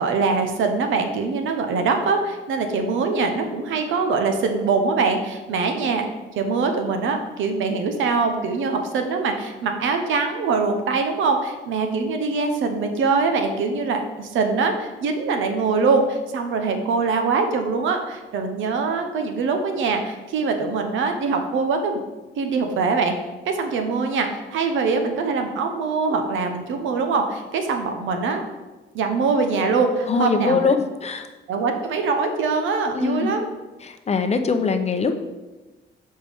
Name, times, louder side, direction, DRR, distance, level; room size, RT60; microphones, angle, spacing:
voice 1, 0.0-6.1 6.3-22.0 22.4-23.1 23.5-28.4 28.9-30.7 31.5-33.5, right 4 dB, 80° right, 5 dB, 0.8 m, -23 dB
voice 2, 30.1-31.3 32.9-33.3 33.8-35.2, left 4 dB, 35° left, 7 dB, 0.6 m, -22 dB
6.8 x 4.3 x 3.5 m, 1.1 s
cardioid pair, 90°, 20 cm